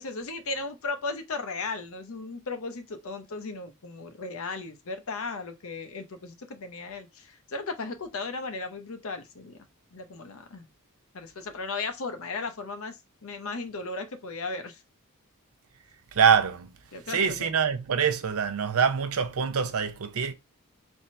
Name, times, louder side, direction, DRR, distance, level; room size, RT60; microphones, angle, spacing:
voice 1, 0.0-9.6 9.9-10.7 11.1-14.8 16.9-17.5, left 3 dB, 65° left, 0.7 m, -36 dB
voice 2, 16.1-16.7 17.1-20.3, right 6 dB, 70° right, 0.6 m, -24 dB
3.4 x 2.7 x 4.1 m
head